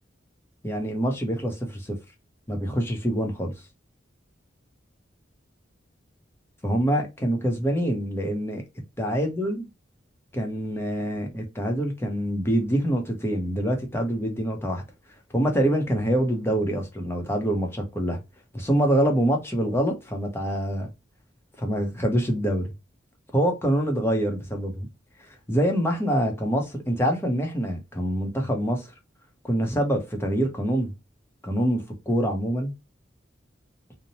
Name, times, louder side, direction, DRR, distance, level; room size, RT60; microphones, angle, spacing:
voice 1, 0.6-2.0 2.5-3.5 6.6-8.6 9.0-9.6 10.3-14.8 15.3-18.2 18.5-20.9 21.6-22.7 23.3-24.9 25.3-28.9 29.4-30.9 31.4-32.7, equal, 15° left, 0.7 m, -25 dB
2.7 x 2.1 x 2.9 m
head